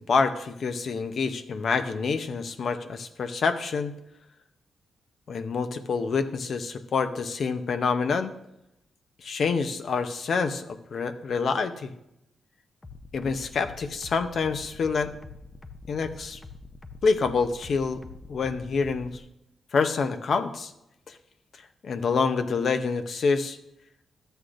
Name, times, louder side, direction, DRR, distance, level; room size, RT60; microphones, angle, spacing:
voice 1, 0.0-3.9 5.3-8.3 9.2-11.9 13.1-15.1 15.9-16.4 17.0-18.0 18.3-19.1 19.7-20.7 21.1-21.2 21.8-23.6, left 5 dB, 60° left, 10 dB, 0.7 m, -27 dB
sound 1, 12.8-19.2, left 3 dB, 20° left, 0.6 m, -44 dB
13.0 x 8.1 x 2.5 m, 0.84 s
cardioid pair, 105°, 0 cm